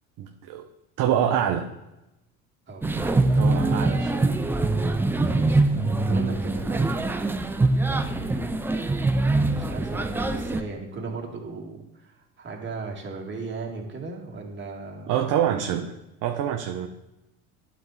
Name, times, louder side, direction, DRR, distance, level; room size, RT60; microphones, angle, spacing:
voice 1, 0.2-0.7 1.0-1.7 3.3-4.4 15.1-16.9, right 9 dB, 45° right, 4 dB, 0.8 m, -26 dB
voice 2, 2.7-3.9 5.2-7.0 7.8-8.6 9.4-15.1, right 3 dB, 25° right, 0 dB, 2.1 m, -37 dB
sound 1, 2.8-10.6, right 2 dB, 5° right, 0.3 m, -23 dB
11.5 x 4.1 x 4.1 m, 0.95 s
hypercardioid pair, 75°, 43 cm